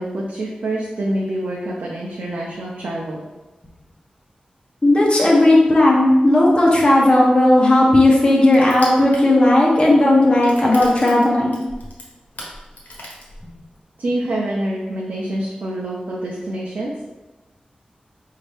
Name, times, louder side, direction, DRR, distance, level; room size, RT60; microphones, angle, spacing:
voice 1, 0.0-3.2 14.0-16.9, right 1 dB, 85° right, -3 dB, 0.6 m, -26 dB
voice 2, 4.8-11.6, left 1 dB, 35° left, -4 dB, 1.1 m, -14 dB
Crushing, 7.0-13.8, left 1 dB, 80° left, 1.1 m, -38 dB
5.2 x 2.8 x 3.4 m, 1.1 s
wide cardioid pair, 80°, 3 cm